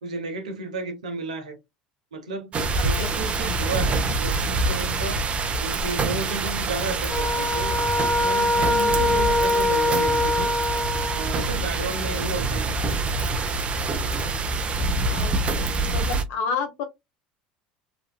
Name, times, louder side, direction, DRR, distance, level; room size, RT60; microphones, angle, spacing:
voice 1, 0.0-1.6 2.1-5.2 5.6-7.9 8.1-10.6 11.1-12.7, right 3 dB, 90° right, 0.9 m, -33 dB
sound 1, 2.5-16.2, right 3 dB, 35° right, 0.7 m, -26 dB
voice 2, 2.8-3.1 14.2-14.3 15.1-16.8, left 5 dB, 65° left, 1.1 m, -31 dB
sound 2, 7.1-11.5, left 1 dB, 25° left, 0.9 m, -23 dB
3.0 x 2.5 x 2.3 m
hypercardioid pair, 80°, 4 cm